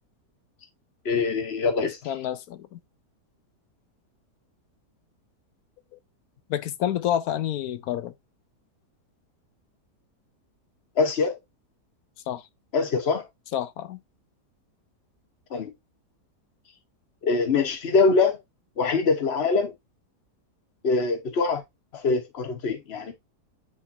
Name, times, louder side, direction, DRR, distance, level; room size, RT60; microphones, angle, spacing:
voice 1, 1.0-2.1 11.0-11.4 12.7-13.2 15.5-15.7 17.2-18.4 18.8-19.7 20.8-21.6 21.9-23.1, left 4 dB, 40° left, 1.4 m, -23 dB
voice 2, 2.1-2.8 5.9-6.0 6.5-8.1 12.3-12.4 13.5-14.0, left 11 dB, 70° left, 1.0 m, -28 dB
9.2 x 3.6 x 2.8 m
omnidirectional pair, 1.8 m